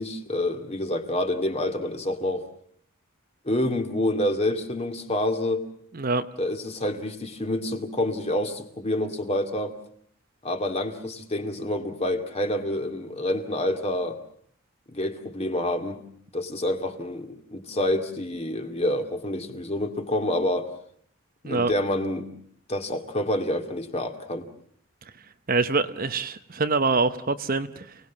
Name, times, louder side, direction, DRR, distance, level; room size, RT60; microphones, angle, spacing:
voice 1, 0.0-2.5 3.4-5.6 6.4-9.8 10.4-14.2 14.9-16.0 16.3-20.7 21.4-22.3 22.7-24.5, left 1 dB, 30° left, 6 dB, 2.4 m, -27 dB
voice 2, 5.9-6.2 21.4-21.7 25.5-27.9, right 3 dB, 40° right, 10 dB, 1.0 m, -25 dB
29.0 x 19.0 x 7.3 m, 0.64 s
head